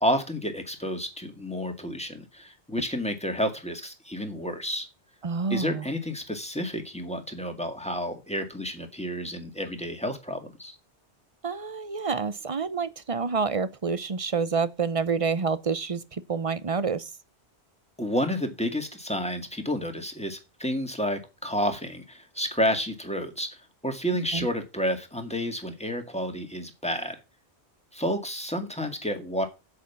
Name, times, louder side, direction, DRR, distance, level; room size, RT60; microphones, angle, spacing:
voice 1, 0.0-4.9 5.5-10.8 18.0-27.2 27.9-29.5, equal, 5° left, 2.0 m, -30 dB
voice 2, 5.2-5.9 11.4-17.1 24.3-24.5, right 5 dB, 35° right, 0.7 m, -28 dB
8.2 x 7.7 x 7.0 m
omnidirectional pair, 1.1 m